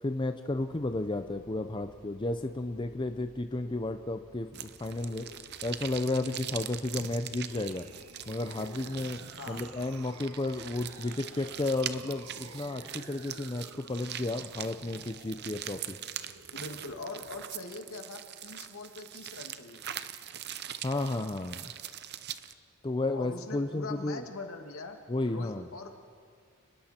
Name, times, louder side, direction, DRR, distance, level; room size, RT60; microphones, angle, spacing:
voice 1, 0.0-5.2 5.6-7.9 8.3-9.2 9.5-16.0 20.8-21.7 22.8-24.2 25.1-25.7, left 2 dB, 20° left, 8 dB, 0.6 m, -33 dB
sound 1, 0.5-13.9, left 1 dB, 45° left, 1.3 m, -55 dB
sound 2, 4.5-22.5, right 10 dB, 50° right, 0.7 m, -42 dB
sound 3, 7.4-17.4, right 3 dB, 85° right, 1.6 m, -53 dB
voice 2, 16.5-19.8 23.1-25.0 25.3-26.1, left 3 dB, 70° left, 4 dB, 2.2 m, -42 dB
29.5 x 20.0 x 4.4 m, 2.2 s
head